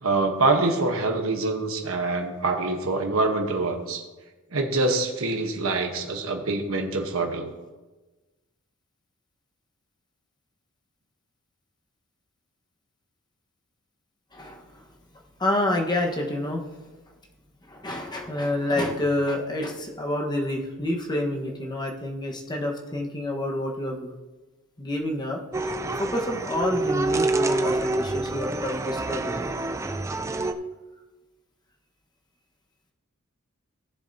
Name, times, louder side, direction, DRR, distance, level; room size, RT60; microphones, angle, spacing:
voice 1, 0.0-4.0 4.5-7.5, right 3 dB, 65° right, 3 dB, 1.1 m, -25 dB
voice 2, 14.3-14.8 15.4-16.7 17.6-24.1 24.8-29.5, left 1 dB, 20° left, 0 dB, 1.3 m, -28 dB
sound 1, 25.5-30.5, right 2 dB, 15° right, 0.3 m, -27 dB
16.5 x 7.4 x 2.8 m, 1.2 s
head